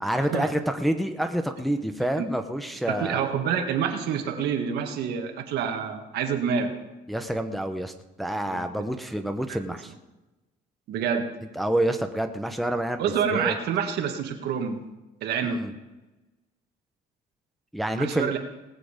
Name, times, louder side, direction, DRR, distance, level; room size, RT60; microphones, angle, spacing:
voice 1, 0.0-3.2 7.1-7.9 8.2-9.9 11.5-13.0 13.3-13.6 15.4-15.7 17.7-18.4, right 1 dB, ahead, 6 dB, 0.9 m, -28 dB
voice 2, 2.9-6.7 8.5-8.7 9.5-9.6 10.9-11.3 13.0-14.8 15.2-15.6 18.0-18.4, right 7 dB, 75° right, 5 dB, 1.8 m, -27 dB
19.0 x 7.7 x 5.1 m, 1.1 s
cardioid pair, 110°, 17 cm